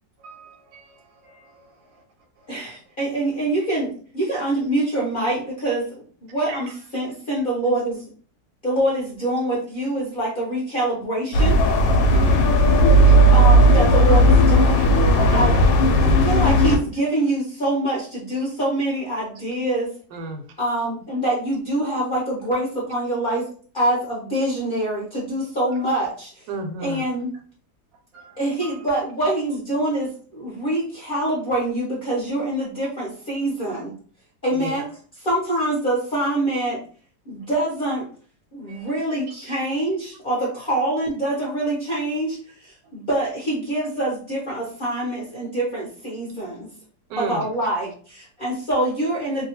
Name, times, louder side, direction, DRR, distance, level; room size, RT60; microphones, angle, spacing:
voice 1, 0.2-2.0 2.4-2.5 3.6-3.7 15.0-15.3 25.7-25.8 28.1-28.9 38.7-38.9, right 4 dB, 70° right, 0.9 m, -49 dB
voice 2, 2.5-6.0 6.3-8.0 8.6-11.6 13.3-15.6 16.0-19.9 20.6-23.4 23.7-26.4 26.8-27.3 28.4-33.9 34.4-34.8 35.2-36.8 37.3-38.1 38.5-46.7 47.2-49.5, right 1 dB, 45° left, 0.7 m, -25 dB
sound 1, 11.3-16.8, equal, 90° left, 1.2 m, -15 dB
voice 3, 12.1-12.6 13.0-13.1 14.8-14.9 20.1-20.4 26.5-27.0 34.6-34.7 47.1-47.4, right 3 dB, 90° right, 1.3 m, -31 dB
2.8 x 2.3 x 2.8 m
omnidirectional pair, 1.8 m